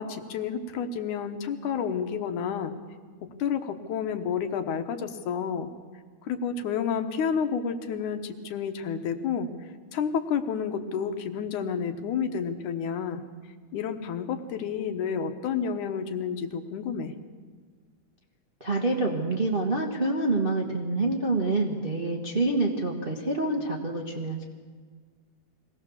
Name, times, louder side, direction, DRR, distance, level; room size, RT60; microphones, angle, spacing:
voice 1, 0.0-2.7 3.2-5.7 6.2-9.5 9.9-13.2 13.7-17.1, left 7 dB, 80° left, 7 dB, 2.6 m, -30 dB
voice 2, 18.6-24.4, right 2 dB, 30° right, 0 dB, 0.9 m, -27 dB
23.0 x 17.5 x 7.1 m, 1.5 s
omnidirectional pair, 3.5 m